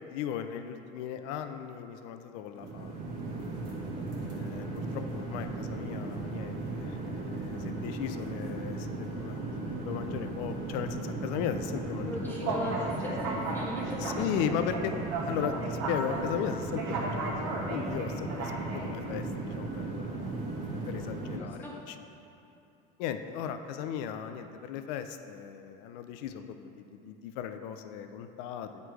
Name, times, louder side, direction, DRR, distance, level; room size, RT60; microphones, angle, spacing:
voice 1, 0.1-3.0 4.1-12.6 14.0-14.9 15.2-20.3 20.9-22.0 23.0-28.7, left 9 dB, 85° left, 8 dB, 0.4 m, -37 dB
sound 1, 2.5-21.4, right 2 dB, 70° right, 1.1 m, -35 dB
voice 2, 12.1-14.2 21.3-21.7, left 1 dB, 10° left, -4 dB, 0.5 m, -39 dB
8.1 x 3.2 x 4.6 m, 2.8 s
cardioid pair, 135°, 20 cm